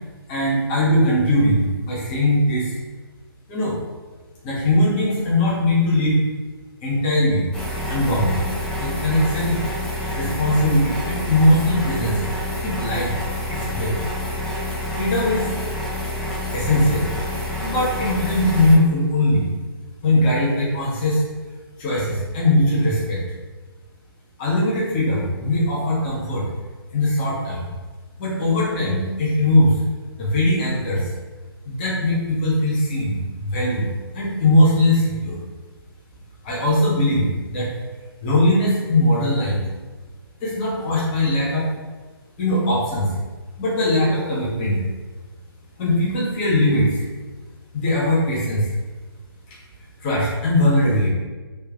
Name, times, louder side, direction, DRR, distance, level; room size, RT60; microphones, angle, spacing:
voice 1, 0.3-2.8 3.5-3.8 4.4-6.2 6.8-7.5 7.9-8.4 8.8-9.6 10.2-12.2 12.6-13.1 13.5-13.9 14.9-15.5 16.5-17.1 17.6-19.5 20.0-21.2 21.8-23.2 24.4-26.5 26.9-27.6 28.2-29.8 30.2-31.1 31.6-33.9 34.1-35.4 36.4-37.7 38.2-39.6 40.4-41.7 42.4-43.1 43.6-44.8 45.8-47.0 47.7-48.7 50.0-51.1, left 1 dB, 25° left, -6 dB, 0.9 m, -20 dB
sound 1, 7.5-18.8, left 1 dB, 5° left, 0.5 m, -28 dB
3.3 x 2.9 x 3.4 m, 1.3 s
figure-of-eight pair, 140°, 13 cm